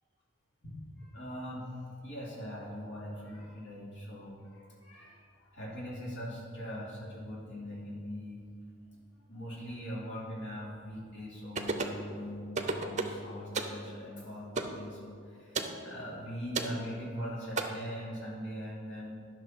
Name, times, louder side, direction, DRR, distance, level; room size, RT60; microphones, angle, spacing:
voice 1, 0.6-8.4 8.9-9.0 9.3-19.1, equal, 60° left, -5 dB, 2.8 m, -41 dB
sound 1, 11.6-12.0 12.5-13.2 13.5-13.8 14.6-14.8 15.5-15.8 16.5-16.8 17.6-17.7, right 3 dB, 35° right, 0.6 m, -32 dB
10.5 x 6.4 x 5.5 m, 2.1 s
head